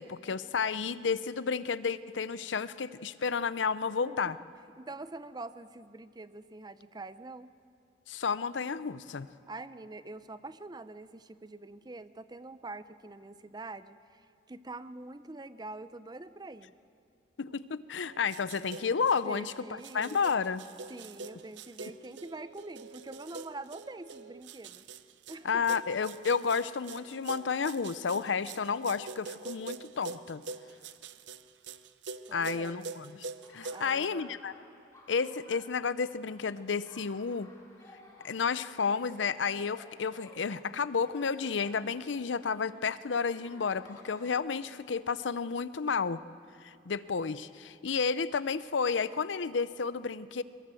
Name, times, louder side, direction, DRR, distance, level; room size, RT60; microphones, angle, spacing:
voice 1, 0.0-4.4 8.1-9.3 17.4-20.6 25.4-30.4 32.3-33.3 33.5-34.5 35.1-37.5 38.2-46.2 46.6-50.4, left 5 dB, 90° left, 16 dB, 0.6 m, -31 dB
voice 2, 4.0-4.3 4.8-7.5 9.5-16.7 19.3-20.2 20.9-24.8 25.3-25.8 32.3-32.9 33.7-34.4, right 2 dB, 20° right, 13 dB, 0.6 m, -45 dB
sound 1, 18.0-34.1, right 4 dB, 75° right, 0.7 m, -44 dB
Laughter, 33.4-44.3, left 1 dB, 15° left, 3.4 m, -56 dB
22.0 x 21.5 x 7.7 m, 2.7 s
head